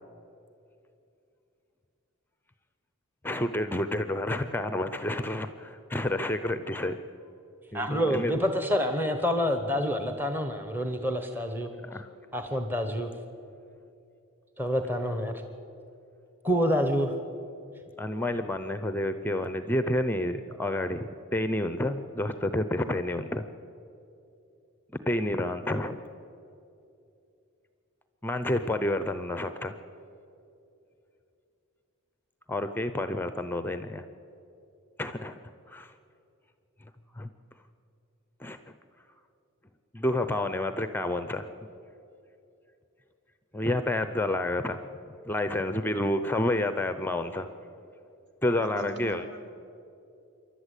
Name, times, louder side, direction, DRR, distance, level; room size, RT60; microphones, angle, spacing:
voice 1, 3.2-7.0 7.7-8.3 11.8-12.1 18.0-23.4 25.1-26.0 28.2-29.7 32.5-34.0 35.0-35.3 35.7-35.9 37.2-37.3 38.4-38.6 39.9-41.5 43.5-44.8 45.3-47.5 48.4-49.2, left 1 dB, 10° left, 10 dB, 0.6 m, -29 dB
voice 2, 7.7-11.7 12.3-13.1 14.6-15.4 16.4-17.1, equal, 10° right, 6 dB, 1.0 m, -27 dB
voice 3, 48.5-49.5, right 2 dB, 55° right, 3 dB, 2.7 m, -43 dB
27.5 x 11.5 x 8.3 m, 2.7 s
head